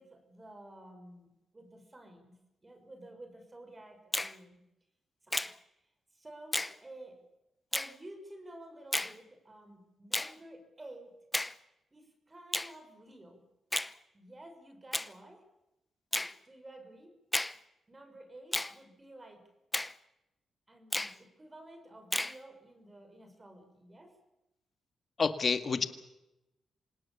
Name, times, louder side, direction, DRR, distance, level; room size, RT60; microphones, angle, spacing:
voice 1, 0.0-4.6 5.2-5.3 6.1-7.2 7.7-11.1 11.9-13.4 14.1-15.5 16.1-17.2 17.9-19.5 20.7-24.2, right 1 dB, 25° right, 7 dB, 6.1 m, -52 dB
Finger snapping, 4.1-4.4 5.3-5.5 6.5-6.8 7.7-7.9 8.9-9.1 10.1-10.3 11.3-11.6 12.5-12.7 13.7-13.9 14.9-15.1 16.1-16.3 17.3-17.6 18.5-18.7 19.7-19.9 20.9-21.2 22.1-22.4, left 1 dB, 15° left, 0.9 m, -32 dB
voice 2, 25.2-25.9, left 5 dB, 45° left, 8 dB, 1.9 m, -28 dB
26.5 x 18.5 x 7.1 m, 0.92 s
cardioid pair, 80°, 0 cm